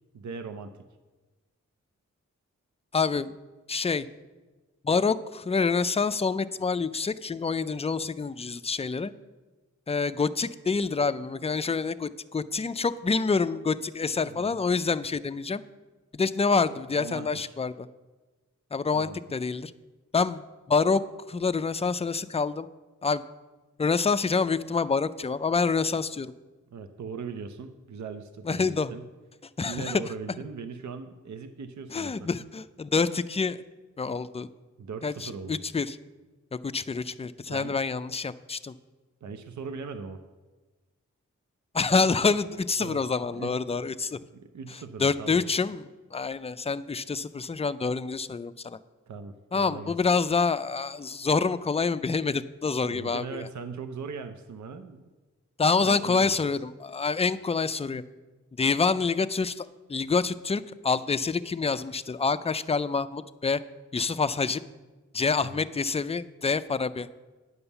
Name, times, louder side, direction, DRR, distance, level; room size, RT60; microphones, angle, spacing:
voice 1, 0.1-0.7 14.2-14.6 17.0-17.6 18.9-19.2 26.7-29.0 29.6-32.3 34.8-35.6 37.5-37.7 39.2-40.2 42.8-43.0 43.3-43.5 44.3-45.4 49.1-49.9 52.8-55.1 55.8-56.3 65.4-65.6, right 5 dB, 70° right, 8 dB, 0.6 m, -39 dB
voice 2, 2.9-3.3 3.7-4.1 4.8-9.1 9.9-15.6 16.1-17.9 18.7-19.7 20.1-20.4 20.7-22.7 23.0-23.2 23.8-26.3 28.5-28.9 29.6-30.0 31.9-33.6 34.0-34.5 35.0-36.0 36.6-38.7 41.7-44.2 45.0-45.8 46.1-48.8 49.5-53.5 55.6-58.0 58.6-63.6 63.9-64.6 65.1-67.1, left 4 dB, 20° left, 12 dB, 0.4 m, -27 dB
9.5 x 5.4 x 7.0 m, 1.2 s
cardioid pair, 50°, 30 cm